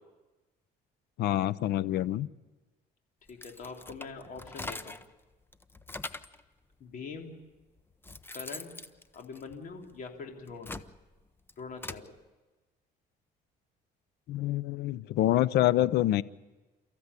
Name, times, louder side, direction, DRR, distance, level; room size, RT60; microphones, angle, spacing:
voice 1, 1.2-2.3 14.3-16.2, left 14 dB, 75° left, 19 dB, 0.7 m, -26 dB
voice 2, 3.3-5.0 6.8-7.3 8.3-8.7 9.1-10.8 11.6-12.1, left 4 dB, 55° left, 2 dB, 3.5 m, -43 dB
sound 1, 3.3-5.1 5.5-6.4 7.2-7.3 7.8-9.9 10.4-12.1, left 2 dB, 15° left, 0.8 m, -43 dB
29.5 x 14.5 x 8.3 m, 1.2 s
cardioid pair, 110°, 17 cm